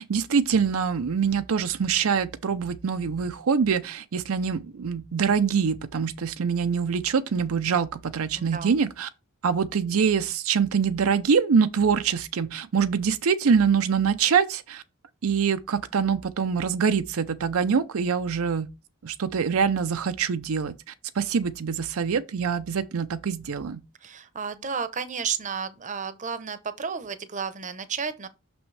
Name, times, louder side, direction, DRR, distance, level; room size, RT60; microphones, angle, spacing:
voice 1, 0.0-9.1 9.4-14.8 15.2-18.7 19.0-20.7 21.1-23.8, right 6 dB, 70° right, 0.5 m, -24 dB
voice 2, 8.3-8.8 24.0-28.3, right 6 dB, 35° right, 0.7 m, -32 dB
6.2 x 6.0 x 3.2 m
head